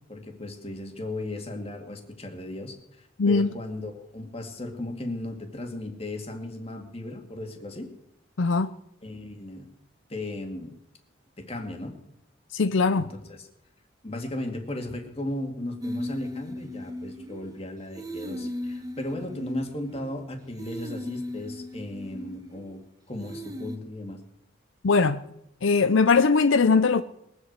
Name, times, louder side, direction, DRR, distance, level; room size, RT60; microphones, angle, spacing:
voice 1, 0.1-7.9 9.0-9.7 10.1-10.8 11.4-12.0 12.9-13.5 14.0-22.8 23.1-24.2, left 1 dB, 30° left, 2.2 m, -36 dB
voice 2, 3.2-3.5 8.4-8.7 12.5-13.1 24.8-25.2 25.6-27.0, left 4 dB, 80° left, 0.6 m, -20 dB
female vocal cut ups collage, 15.8-17.6 17.9-20.2 20.6-22.8 23.2-23.8, left 1 dB, 20° right, 1.3 m, -37 dB
21.5 x 8.1 x 8.2 m
head